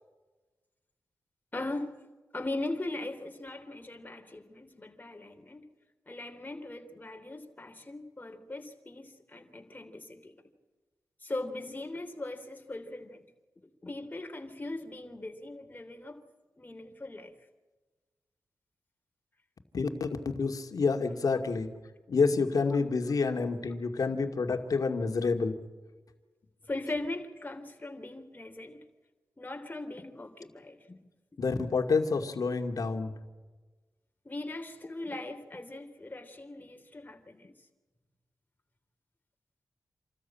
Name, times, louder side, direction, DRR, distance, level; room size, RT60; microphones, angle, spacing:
voice 1, 1.5-2.0 2.3-5.7 6.1-10.3 11.2-13.3 13.6-16.2 16.6-17.3 26.7-28.9 29.4-31.0 34.3-37.5, left 2 dB, 25° left, 5 dB, 3.5 m, -39 dB
voice 2, 19.7-21.7 22.1-25.6 31.4-33.2, left 4 dB, 65° left, 5 dB, 2.3 m, -28 dB
27.5 x 14.0 x 8.8 m, 1.3 s
cardioid pair, 55°, 6 cm